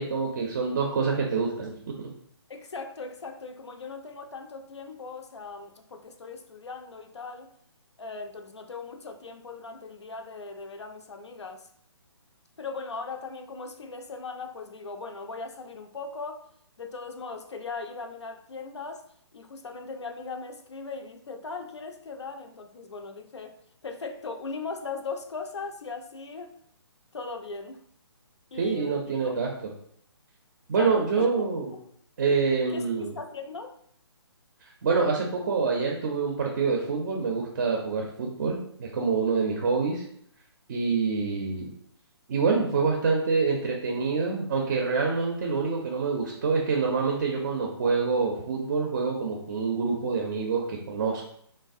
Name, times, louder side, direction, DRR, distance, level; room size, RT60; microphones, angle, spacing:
voice 1, 0.0-2.1 28.5-29.7 30.7-31.7 32.2-33.1 34.6-40.0 40.7-41.7 42.3-51.3, right 4 dB, 40° right, 0 dB, 0.4 m, -26 dB
voice 2, 2.5-7.5 8.0-11.7 12.6-16.4 16.8-19.0 19.3-23.6 23.8-26.6 27.1-27.8 28.5-29.4 30.7-31.5 31.7-31.8 32.3-32.4 32.7-33.7, left 4 dB, 85° left, 5 dB, 0.4 m, -39 dB
3.2 x 2.0 x 2.5 m, 0.65 s
figure-of-eight pair, 145°, 14 cm